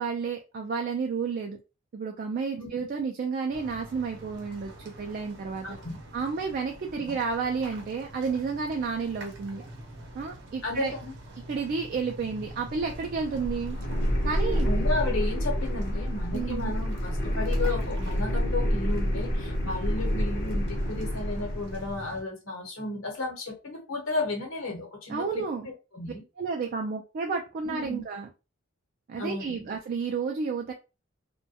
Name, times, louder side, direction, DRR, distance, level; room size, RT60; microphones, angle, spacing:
voice 1, 0.0-1.6 1.9-5.8 6.1-9.6 10.1-10.9 11.5-13.8 14.2-14.7 16.3-16.7 25.1-25.7 26.4-28.3 29.1-30.7, right 5 dB, 45° right, 2 dB, 0.3 m, -31 dB
sound 1, 3.5-22.2, right 1 dB, 60° right, 0.7 m, -44 dB
voice 2, 5.6-6.0 7.1-7.2 10.6-11.1 14.7-26.2 27.6-28.0 29.2-29.7, left 2 dB, 75° left, 1 dB, 0.9 m, -33 dB
sound 2, 12.4-22.0, equal, 50° left, 0.6 m, -28 dB
2.2 x 2.2 x 2.7 m, 0.30 s
head